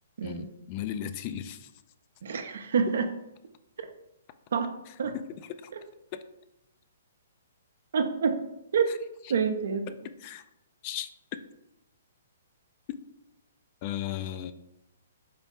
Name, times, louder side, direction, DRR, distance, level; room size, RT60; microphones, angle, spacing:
voice 1, 0.2-1.7 4.9-5.0 5.3-5.7 6.1-6.2 8.9-9.0 9.2-9.3 10.2-10.4 10.8-11.1 13.8-14.5, left 11 dB, 40° left, 10 dB, 0.3 m, -36 dB
voice 2, 2.2-3.1 4.5-4.7 5.0-5.1 7.9-8.4 8.7-8.9 9.3-9.8, right 6 dB, 65° right, 8 dB, 0.5 m, -27 dB
4.1 x 3.1 x 3.5 m, 0.85 s
hypercardioid pair, 125°, 0 cm